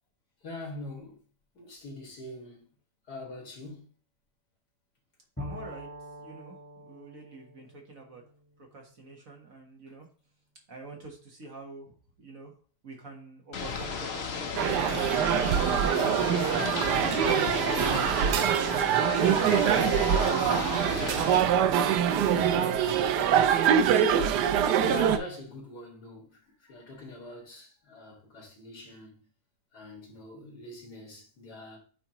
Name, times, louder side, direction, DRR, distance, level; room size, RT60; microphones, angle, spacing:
voice 1, 0.4-1.2 1.5-2.6 3.1-3.9 24.8-26.4 26.7-29.2 29.7-31.8, left 2 dB, 75° left, 2.7 m, -42 dB
Bowed string instrument, 5.4-9.1, equal, 10° left, 1.0 m, -44 dB
voice 2, 5.4-5.9 6.2-6.6 6.8-8.2 8.6-10.1 10.7-12.5 12.8-22.6, right 2 dB, 55° right, 1.8 m, -46 dB
Ocean / Boat Water vehicle, 13.5-21.4, left 5 dB, 50° left, 0.8 m, -34 dB
sound 1, 14.6-25.2, right 8 dB, 90° right, 1.2 m, -24 dB
8.7 x 4.4 x 3.0 m
omnidirectional pair, 1.7 m